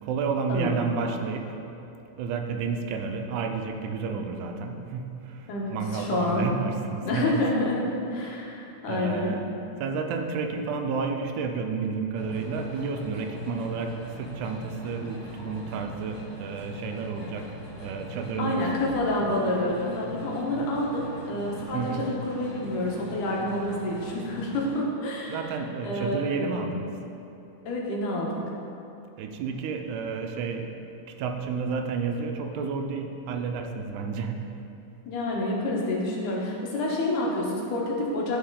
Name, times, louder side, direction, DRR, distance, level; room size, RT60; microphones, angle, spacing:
voice 1, 0.0-1.5 2.2-7.4 8.2-8.4 8.9-9.5 9.8-17.5 17.8-18.6 21.7-22.0 25.3-26.9 29.2-30.7 31.2-34.4, right 5 dB, 80° right, 4 dB, 2.0 m, -31 dB
voice 2, 5.5-6.5 7.0-7.8 8.1-9.4 18.4-25.4 25.8-26.5 27.7-28.4 35.1-38.4, left 1 dB, 90° left, -3 dB, 2.7 m, -28 dB
sound 1, 12.1-24.8, left 2 dB, 45° left, 2.0 m, -42 dB
12.5 x 4.3 x 3.8 m, 2.9 s
omnidirectional pair, 3.5 m